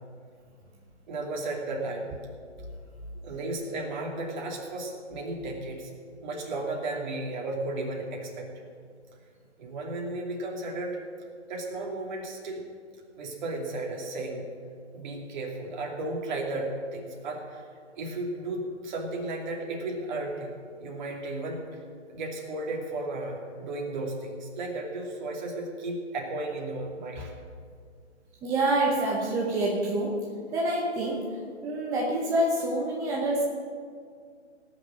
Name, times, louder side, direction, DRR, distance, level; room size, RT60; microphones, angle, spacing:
voice 1, 1.1-2.1 3.2-5.9 6.2-8.5 9.6-11.0 11.5-12.6 13.2-14.4 14.9-17.6 18.0-20.6 20.8-21.6 22.1-27.3, right 2 dB, 40° right, 0 dB, 2.7 m, -34 dB
voice 2, 28.4-31.3 31.6-33.4, right 1 dB, 10° right, -2 dB, 0.7 m, -27 dB
18.5 x 6.5 x 7.5 m, 2.1 s
hypercardioid pair, 145°, 36 cm